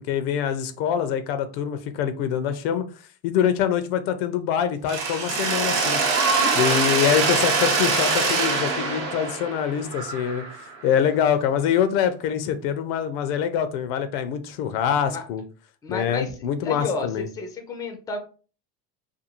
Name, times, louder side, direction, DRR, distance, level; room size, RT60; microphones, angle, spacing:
voice 1, 0.0-2.8 3.2-6.0 6.5-10.4 10.8-15.4 15.9-17.3, left 8 dB, 80° left, 11 dB, 0.5 m, -24 dB
Mechanisms, 4.9-10.8, right 4 dB, 45° right, 0.7 m, -23 dB
voice 2, 6.3-6.8 7.1-7.2 15.1-15.2 15.8-16.3 16.6-18.2, left 3 dB, 15° left, 5 dB, 0.4 m, -31 dB
2.5 x 2.3 x 2.8 m, 0.37 s
cardioid pair, 135°, 29 cm